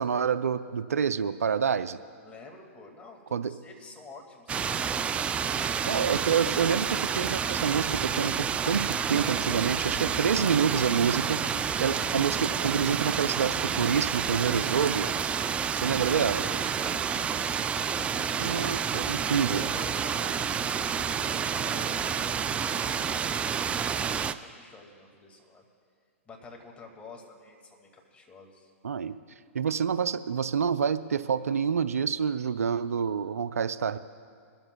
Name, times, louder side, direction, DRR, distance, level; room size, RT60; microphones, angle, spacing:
voice 1, 0.0-2.0 3.3-3.5 5.9-8.8 9.1-11.4 11.8-15.1 15.7-16.4 18.4-19.6 28.8-29.1 29.5-34.0, right 7 dB, 80° right, 12 dB, 0.5 m, -27 dB
voice 2, 2.2-5.4 9.0-10.4 11.5-12.2 16.7-17.2 18.0-18.7 19.5-20.3 20.6-25.6 26.3-28.7, left 3 dB, 15° left, 1 dB, 2.1 m, -49 dB
sound 1, 4.5-24.3, right 7 dB, 15° right, 0.3 m, -29 dB
23.0 x 13.0 x 2.3 m, 2.3 s
hypercardioid pair, 120°, 8 cm